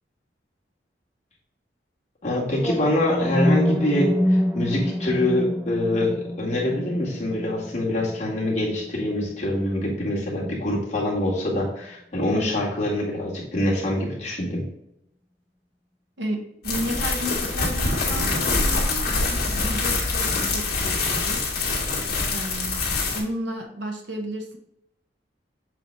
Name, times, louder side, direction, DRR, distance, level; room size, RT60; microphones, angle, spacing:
voice 1, 2.2-14.7, left 1 dB, 40° left, -4 dB, 2.1 m, -25 dB
sound 1, 2.5-10.5, equal, 10° right, 0.9 m, -27 dB
voice 2, 16.2-21.4 22.3-24.6, equal, 80° right, 3 dB, 1.1 m, -33 dB
sound 2, 16.6-23.2, left 3 dB, 60° left, 2.0 m, -25 dB
7.2 x 4.0 x 3.2 m, 0.80 s
head